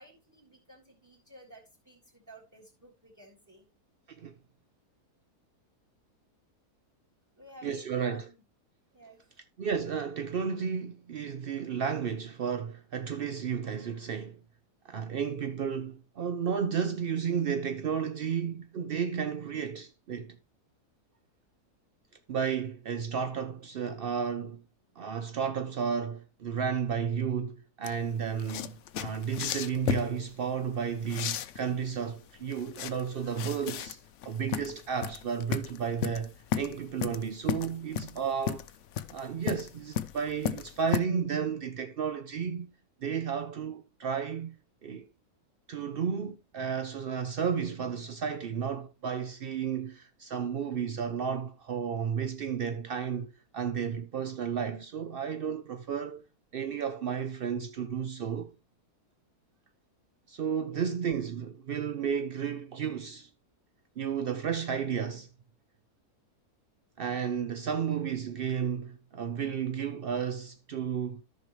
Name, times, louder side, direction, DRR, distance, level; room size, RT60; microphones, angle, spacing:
voice 1, 0.0-3.7 7.3-8.4 8.9-9.4 60.6-60.9, right 1 dB, 10° right, 2.9 m, -54 dB
voice 2, 7.6-8.3 9.6-14.4 14.8-20.4 22.3-24.6 25.0-34.0 34.3-38.7 39.1-42.7 43.0-44.6 44.8-45.1 45.7-56.2 56.5-58.5 60.3-63.3 64.0-65.3 67.0-71.2, right 7 dB, 80° right, 0.5 m, -32 dB
sound 1, 27.8-41.0, left 9 dB, 65° left, 0.8 m, -35 dB
13.5 x 5.5 x 3.0 m
omnidirectional pair, 1.7 m